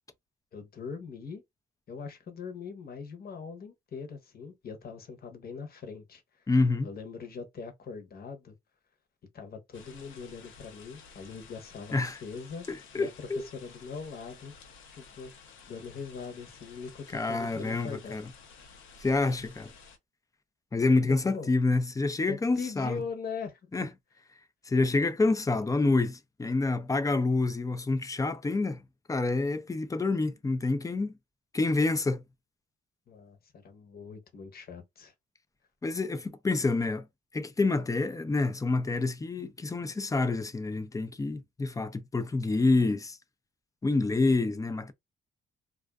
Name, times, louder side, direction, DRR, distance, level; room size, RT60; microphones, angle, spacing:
voice 1, 0.5-1.4 1.9-6.2 6.8-8.5 9.3-12.7 13.0-14.5 14.9-15.3 15.7-18.2 21.0-21.5 22.3-23.9 33.1-33.4 33.6-35.1, left 5 dB, 50° left, 0.9 m, -41 dB
voice 2, 6.5-6.9 11.9-12.2 12.7-13.5 17.1-18.3 19.0-19.7 20.7-23.0 23.7-23.9 24.7-28.8 29.1-31.1 31.5-32.2 35.8-37.0 37.3-43.2 43.8-44.9, left 3 dB, 15° left, 0.4 m, -27 dB
sound 1, 9.7-20.0, left 5 dB, 75° left, 0.7 m, -53 dB
2.4 x 2.4 x 2.2 m
cardioid pair, 90°, 20 cm